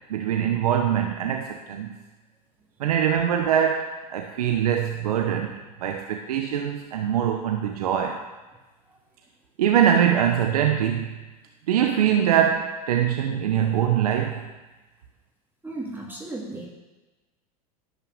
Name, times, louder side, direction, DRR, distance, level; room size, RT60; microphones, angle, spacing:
voice 1, 0.1-1.9 2.8-8.2 9.6-11.1 11.7-14.4, right 9 dB, 80° right, 4 dB, 1.0 m, -23 dB
voice 2, 15.6-16.7, right 2 dB, 10° right, -3 dB, 2.5 m, -35 dB
11.5 x 5.8 x 7.2 m, 1.2 s
hypercardioid pair, 95°, 19 cm